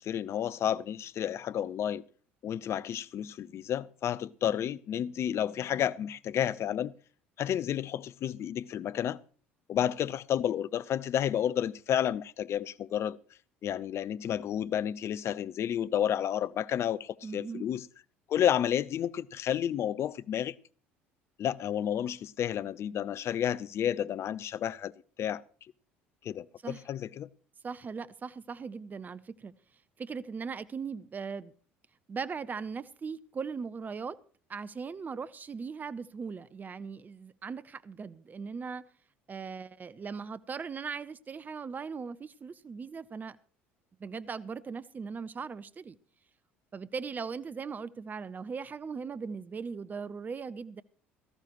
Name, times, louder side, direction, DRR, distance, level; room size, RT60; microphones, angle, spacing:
voice 1, 0.0-2.0 2.4-6.9 7.4-9.2 9.7-13.2 13.6-17.9 18.3-20.5 21.4-24.9 25.2-25.4 26.2-27.3, left 10 dB, 45° left, 0.5 m, -31 dB
voice 2, 17.2-17.7 26.6-26.8 27.6-29.5 30.0-31.5 32.1-34.2 34.5-38.8 39.3-43.4 44.0-46.0 46.7-50.8, right 5 dB, 25° right, 0.6 m, -39 dB
17.5 x 14.0 x 3.0 m
figure-of-eight pair, 60°, 6 cm